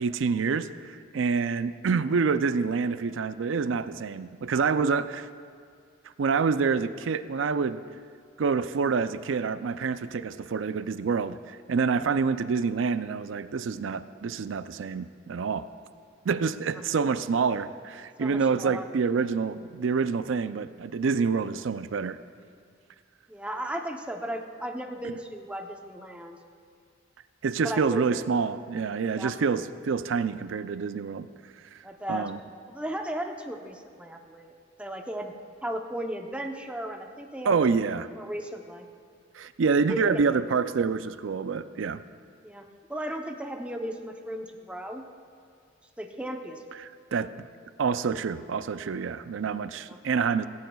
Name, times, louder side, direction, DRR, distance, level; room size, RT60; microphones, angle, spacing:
voice 1, 0.0-5.3 6.2-7.8 8.4-15.7 16.3-22.2 25.0-25.1 27.4-31.3 31.7-31.8 32.1-32.4 37.4-38.1 39.3-42.0 46.8-47.5 47.8-50.5, right 5 dB, 70° right, 13 dB, 0.4 m, -27 dB
voice 2, 18.2-18.9 23.3-26.4 27.6-28.2 29.1-29.3 31.8-32.3 32.7-34.5 34.8-35.3 35.6-37.6 38.2-38.9 39.8-40.4 42.4-45.0 46.0-46.6 49.9-50.0, right 1 dB, 5° right, 3 dB, 0.7 m, -35 dB
17.0 x 16.0 x 2.3 m, 2.3 s
head